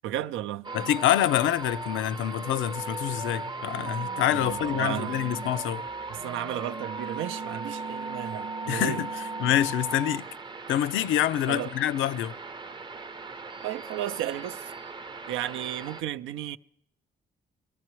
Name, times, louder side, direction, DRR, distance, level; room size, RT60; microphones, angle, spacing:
voice 1, 0.0-0.7 4.3-5.2 6.1-9.0 11.5-11.7 13.6-14.6 15.3-16.6, right 12 dB, 85° right, 0.5 m, -33 dB
sound 1, 0.6-16.0, right 3 dB, 25° right, 0.5 m, -37 dB
voice 2, 0.7-5.8 8.7-9.1 9.4-10.3 10.7-12.3, left 12 dB, 80° left, 0.5 m, -26 dB
22.0 x 14.0 x 3.1 m
cardioid pair, 90°, 20 cm